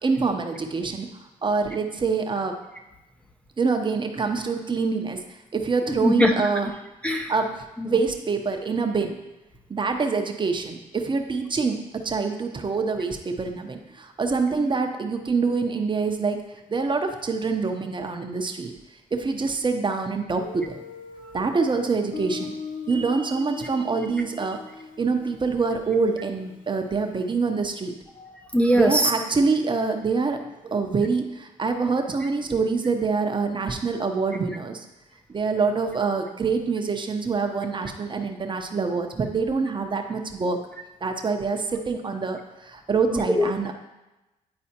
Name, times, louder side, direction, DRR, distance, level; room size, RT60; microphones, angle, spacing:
voice 1, 0.0-1.1 1.4-2.6 3.6-5.2 5.5-6.7 7.3-7.5 7.8-9.2 9.7-16.4 16.7-18.7 19.1-20.8 21.3-22.6 22.9-24.6 25.0-27.9 28.7-34.8 35.3-40.6 41.0-43.7, right 4 dB, 30° right, 5 dB, 0.8 m, -25 dB
voice 2, 5.9-6.5 7.0-7.3 7.8-7.9 28.2-29.1 43.4-43.5, equal, 10° left, 3 dB, 0.6 m, -21 dB
Guitar, 20.4-27.0, left 5 dB, 65° left, 0.8 m, -40 dB
9.7 x 4.2 x 2.9 m, 1.0 s
supercardioid pair, 70°, 15 cm